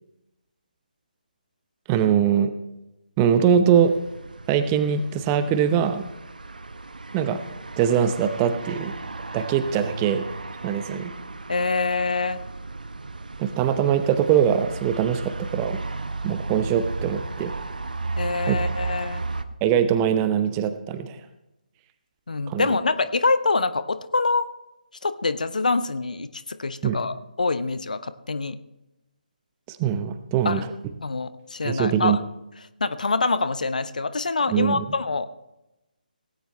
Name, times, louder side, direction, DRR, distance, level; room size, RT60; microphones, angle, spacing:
voice 1, 1.9-2.5 3.2-3.9 4.5-6.1 7.1-7.4 7.8-8.9 9.3-10.3 10.6-11.1 13.4-15.8 16.2-17.5 18.5-18.6 19.6-21.2 22.5-22.7 26.8-27.0 29.7-30.7 31.6-32.2 34.5-34.8, right 8 dB, 15° right, 10 dB, 0.8 m, -22 dB
sound 1, 3.7-19.4, right 3 dB, 65° right, 1.1 m, -34 dB
voice 2, 11.5-12.4 18.2-19.2 22.3-24.5 25.0-28.6 30.4-30.6 31.0-32.2 32.8-35.3, left 3 dB, 55° left, 13 dB, 0.9 m, -25 dB
18.0 x 16.0 x 3.2 m, 0.94 s
figure-of-eight pair, 145°, 5 cm